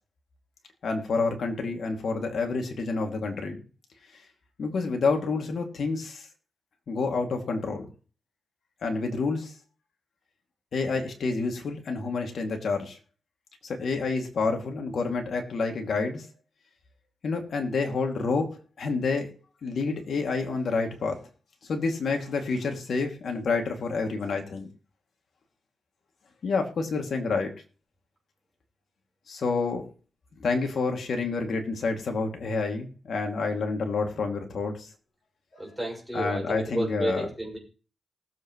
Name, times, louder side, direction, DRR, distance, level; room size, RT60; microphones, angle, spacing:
voice 1, 0.8-3.6 4.6-6.3 6.9-7.9 8.8-9.5 10.7-13.0 13.6-16.3 17.2-19.3 19.6-21.2 21.7-24.7 26.4-27.5 29.3-29.8 30.4-34.9 36.1-37.2, left 4 dB, 70° left, 3 dB, 2.5 m, -28 dB
voice 2, 35.5-37.6, right 1 dB, ahead, -1 dB, 6.2 m, -32 dB
19.5 x 7.9 x 3.1 m, 0.38 s
cardioid pair, 75°, 0 cm